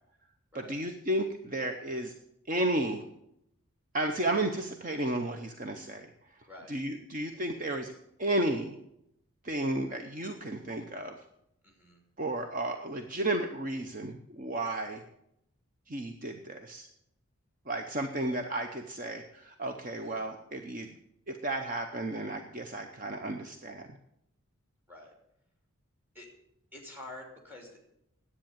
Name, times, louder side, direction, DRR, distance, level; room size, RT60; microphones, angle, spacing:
voice 1, 0.5-2.1 2.5-3.0 3.9-6.1 6.7-7.9 8.2-8.8 9.4-11.2 12.2-15.0 15.9-16.9 17.7-21.0 21.3-23.8, right 1 dB, 35° right, 5 dB, 0.8 m, -33 dB
voice 2, 11.6-12.0 20.0-20.2 24.9-25.1 26.1-26.3 26.7-27.8, left 2 dB, 10° right, 2 dB, 3.0 m, -48 dB
10.5 x 8.5 x 8.8 m, 0.78 s
head